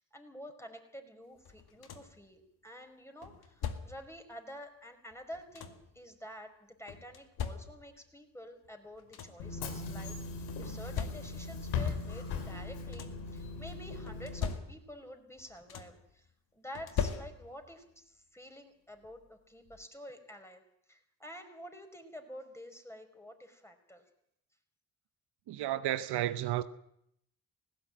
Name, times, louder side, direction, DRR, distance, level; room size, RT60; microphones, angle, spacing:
voice 1, 0.0-16.3 16.5-20.6 20.9-24.0, equal, 5° left, 5.3 m, -49 dB
sound 1, 1.5-2.3 3.2-4.2 5.1-6.0 6.9-8.1 8.7-8.8 8.9-9.6 10.5-11.6 12.6-13.3 14.1-15.1 15.4-16.1 16.8-17.7 19.0-19.1 19.7-19.8, left 7 dB, 65° left, 2.1 m, -40 dB
Bus / Engine, 9.4-14.5, left 4 dB, 85° left, 2.4 m, -38 dB
voice 2, 25.5-26.6, right 13 dB, 70° right, 1.1 m, -32 dB
19.0 x 16.5 x 8.9 m
hypercardioid pair, 45°, 40 cm